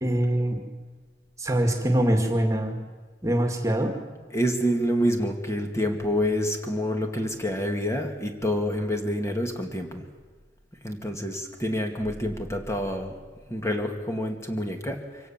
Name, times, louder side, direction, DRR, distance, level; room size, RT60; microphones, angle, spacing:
voice 1, 0.0-0.6 1.4-2.8 3.2-3.9, right 1 dB, 15° right, 4 dB, 2.2 m, -23 dB
voice 2, 4.3-10.1 10.8-13.2 13.5-15.3, equal, 15° left, 4 dB, 2.4 m, -27 dB
25.0 x 17.0 x 7.5 m, 1.4 s
head